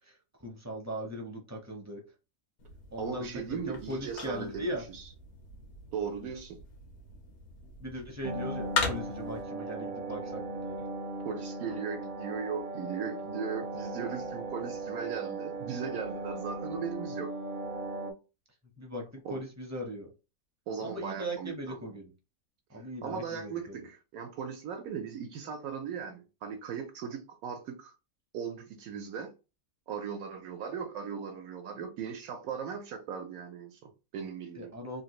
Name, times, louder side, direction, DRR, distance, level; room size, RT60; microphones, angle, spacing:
voice 1, 0.0-2.0 2.9-4.8 7.8-10.8 18.8-20.1 20.8-22.1 22.7-23.8 34.6-35.0, equal, 20° right, 0.4 m, -39 dB
sound 1, 2.6-9.4, left 4 dB, 85° left, 1.3 m, -39 dB
voice 2, 3.0-4.7 4.9-5.0 5.9-6.6 11.2-17.3 19.2-19.4 20.7-21.9 22.7-27.9 28.3-29.3 29.9-34.7, right 6 dB, 80° right, 1.0 m, -38 dB
sound 2, 8.2-18.1, right 2 dB, 60° right, 0.7 m, -38 dB
3.3 x 2.4 x 2.9 m
omnidirectional pair, 1.5 m